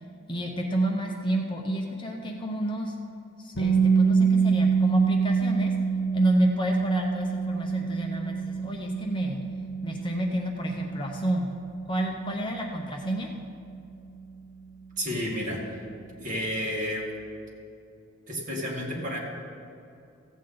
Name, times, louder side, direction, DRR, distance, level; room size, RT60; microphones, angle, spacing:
voice 1, 0.3-2.9 3.4-5.7 6.1-9.4 9.8-11.5 11.9-13.3, right 1 dB, 25° left, 1 dB, 0.7 m, -29 dB
sound 1, 3.6-15.4, right 5 dB, 60° left, 0.8 m, -27 dB
voice 2, 15.0-15.7 16.2-17.1 18.3-19.2, equal, 40° right, -3 dB, 2.0 m, -31 dB
15.0 x 8.1 x 3.9 m, 2.5 s
head